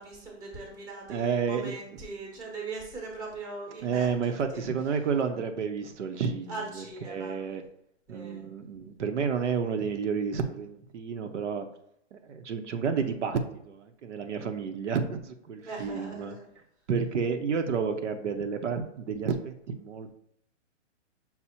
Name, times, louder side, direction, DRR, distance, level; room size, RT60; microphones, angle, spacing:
voice 1, 0.0-4.7 6.5-7.4 8.1-8.5 15.6-16.5, right 3 dB, 10° right, -1 dB, 0.8 m, -40 dB
voice 2, 1.1-1.7 3.8-7.6 8.1-11.7 12.1-16.3 16.9-20.1, right 6 dB, 70° right, 6 dB, 0.6 m, -30 dB
5.6 x 2.0 x 4.2 m, 0.73 s
hypercardioid pair, 155°, 37 cm